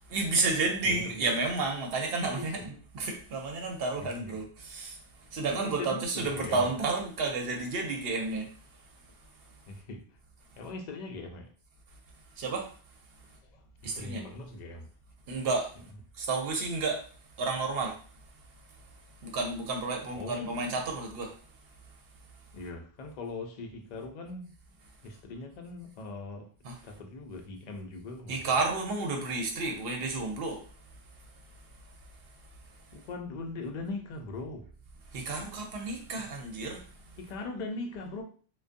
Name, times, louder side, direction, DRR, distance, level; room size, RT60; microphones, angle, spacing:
voice 1, 0.1-8.5 12.4-12.7 13.8-14.2 15.3-15.7 16.2-17.1 17.4-18.0 19.2-21.4 26.6-26.8 28.3-30.6 35.1-37.2, right 3 dB, 65° right, 0.8 m, -31 dB
voice 2, 0.8-1.4 2.3-2.5 4.0-4.3 5.5-6.7 9.7-10.2 10.6-11.5 13.5-14.9 20.1-20.8 22.5-24.5 25.0-26.5 26.8-28.6 32.9-34.7 37.2-38.2, left 3 dB, 55° left, 0.5 m, -40 dB
2.4 x 2.2 x 2.5 m
omnidirectional pair, 1.1 m